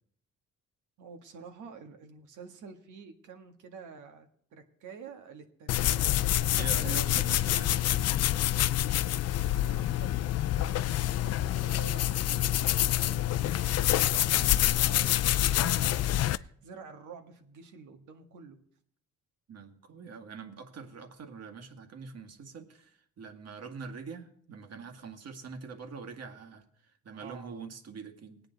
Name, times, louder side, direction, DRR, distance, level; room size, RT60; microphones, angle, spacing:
voice 1, 1.0-7.0 9.6-18.6 27.1-27.6, right 5 dB, 80° right, 5 dB, 1.7 m, -49 dB
sound 1, 5.7-16.4, left 13 dB, 55° left, 0.5 m, -27 dB
voice 2, 6.5-8.5 19.5-26.6 27.0-28.4, right 5 dB, 55° right, 6 dB, 2.0 m, -44 dB
19.5 x 8.9 x 4.0 m, 0.67 s
cardioid pair, 90°, 30 cm